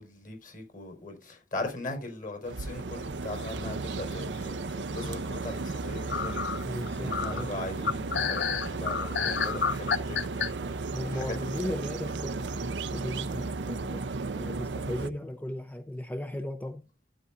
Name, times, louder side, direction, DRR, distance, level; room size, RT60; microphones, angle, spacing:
voice 1, 0.0-11.8, left 2 dB, 50° left, 4.4 m, -39 dB
sound 1, 2.4-15.1, right 3 dB, 90° right, 0.6 m, -34 dB
sound 2, 3.4-4.2 4.7-5.3 5.7-5.8 6.1-10.5, left 6 dB, 85° left, 0.6 m, -31 dB
voice 2, 6.6-7.5 10.9-14.1 14.4-16.8, left 1 dB, 10° left, 0.6 m, -36 dB
12.5 x 8.5 x 2.5 m
head